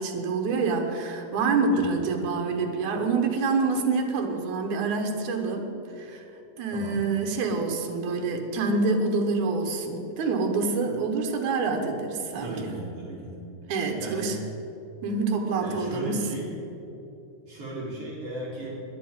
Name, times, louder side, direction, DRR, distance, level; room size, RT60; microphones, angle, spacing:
voice 1, 0.0-5.7 6.0-6.2 6.6-12.7 13.7-14.4 15.0-16.2, right 4 dB, 70° right, 4 dB, 2.6 m, -26 dB
voice 2, 6.7-7.0 12.4-13.4 13.9-14.4 15.6-16.5 17.5-18.8, right 1 dB, 45° right, -6 dB, 3.4 m, -37 dB
10.5 x 8.4 x 8.9 m, 2.9 s
omnidirectional pair, 3.6 m